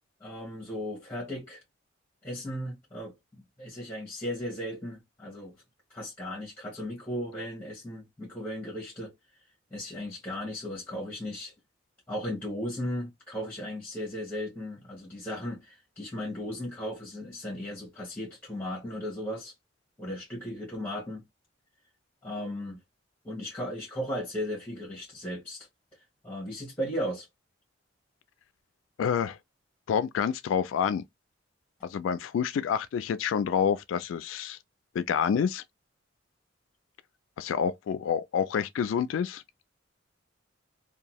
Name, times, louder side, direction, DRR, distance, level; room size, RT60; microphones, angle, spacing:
voice 1, 0.2-1.6 2.2-5.5 5.9-9.1 9.7-11.5 12.1-19.5 20.0-21.2 22.2-22.8 23.2-25.7 26.2-27.3, equal, 10° left, 1.0 m, -36 dB
voice 2, 29.0-29.4 29.9-31.0 31.8-34.6 34.9-35.6 37.4-39.4, left 7 dB, 80° left, 0.3 m, -28 dB
2.6 x 2.2 x 3.0 m
head